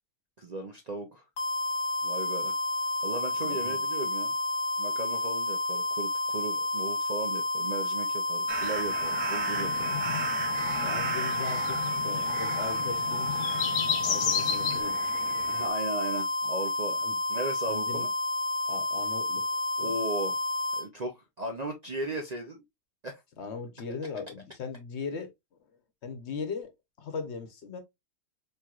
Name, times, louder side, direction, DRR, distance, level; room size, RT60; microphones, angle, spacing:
voice 1, 0.4-1.2 2.0-2.5 3.0-4.3 4.8-9.9 15.5-17.0 17.3-18.1 19.8-20.4 20.8-22.6 23.0-23.2, right 2 dB, 45° right, 0.6 m, -36 dB
sound 1, 1.4-20.9, left 2 dB, 40° left, 1.5 m, -30 dB
voice 2, 3.4-3.8 10.8-13.5 14.0-15.0 17.0-17.2 17.7-18.1 18.7-19.9 23.4-25.3 26.0-26.7 27.0-27.8, left 5 dB, 60° left, 1.1 m, -39 dB
sound 2, 8.5-15.7, right 7 dB, 75° right, 1.0 m, -38 dB
sound 3, 9.5-14.8, left 8 dB, 90° left, 1.1 m, -34 dB
4.5 x 3.2 x 2.3 m
omnidirectional pair, 1.4 m